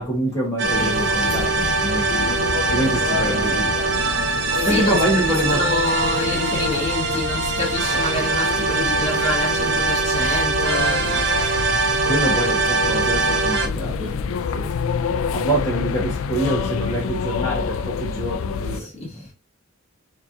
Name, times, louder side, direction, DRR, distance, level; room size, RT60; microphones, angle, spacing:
voice 1, 0.0-2.3 2.7-3.9 4.2-5.6 12.0-14.7 15.3-18.9, right 1 dB, 15° left, 1.3 m, -25 dB
sound 1, 0.6-18.8, left 6 dB, 75° left, 0.3 m, -27 dB
sound 2, 0.6-13.7, right 3 dB, 55° right, 0.8 m, -22 dB
voice 2, 0.8-1.8 4.3-11.3 14.0-14.1 18.7-19.3, left 1 dB, 30° left, 1.5 m, -28 dB
4.4 x 2.9 x 2.6 m
head